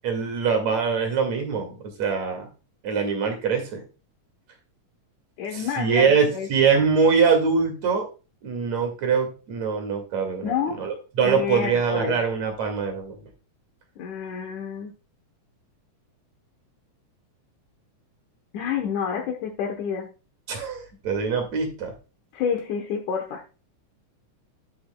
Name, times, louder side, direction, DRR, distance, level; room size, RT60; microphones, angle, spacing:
voice 1, 0.0-2.5 2.8-3.8 5.5-8.1 8.4-13.2 20.5-21.9, right 5 dB, 60° right, 4 dB, 3.2 m, -23 dB
voice 2, 5.4-6.5 10.4-10.8 11.2-12.2 14.0-14.9 18.5-20.1 22.3-23.4, left 7 dB, 75° left, 2 dB, 2.5 m, -29 dB
11.0 x 8.8 x 2.2 m, 0.32 s
omnidirectional pair, 3.6 m